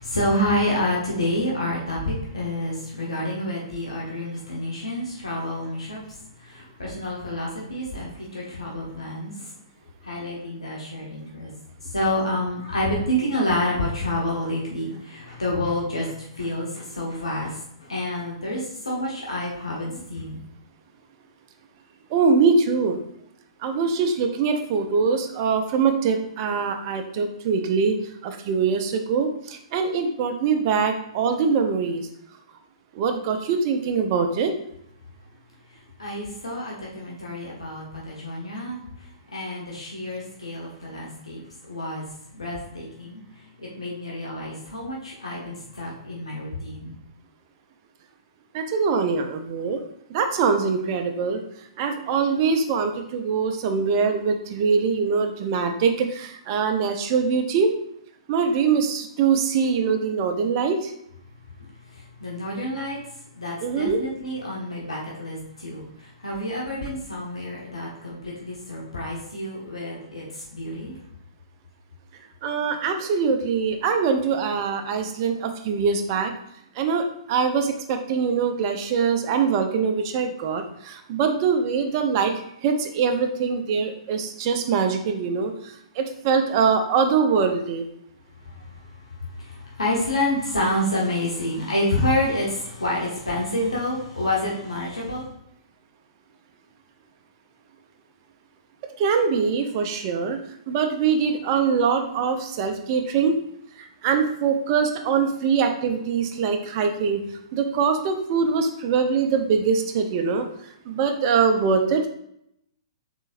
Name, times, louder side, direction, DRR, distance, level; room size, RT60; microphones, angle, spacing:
voice 1, 0.0-9.5 10.0-11.5 11.8-20.4 35.7-41.4 41.7-42.0 42.3-47.0 61.6-63.0 63.3-70.9 88.4-95.3, left 1 dB, 85° left, -4 dB, 1.0 m, -28 dB
voice 2, 22.1-23.0 23.6-28.0 28.2-32.0 32.9-34.5 48.5-49.8 50.1-51.4 51.8-57.7 58.3-60.9 63.6-64.0 72.4-76.3 76.7-85.5 86.0-87.8 99.0-100.4 100.7-103.4 103.8-107.2 107.5-110.5 110.9-112.1, right 5 dB, 40° right, 5 dB, 0.6 m, -23 dB
3.9 x 3.7 x 2.5 m, 0.74 s
figure-of-eight pair, 115°, 3 cm